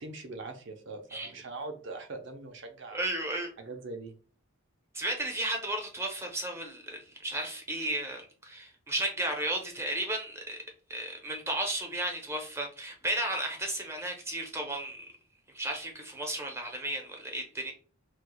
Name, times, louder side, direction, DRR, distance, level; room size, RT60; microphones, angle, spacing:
voice 1, 0.0-3.0 3.6-4.1, right 3 dB, 65° right, 0.6 m, -41 dB
voice 2, 2.9-3.5 4.9-10.6 10.9-15.1 15.5-17.7, right 1 dB, 15° right, 0.7 m, -34 dB
4.3 x 2.3 x 2.3 m
head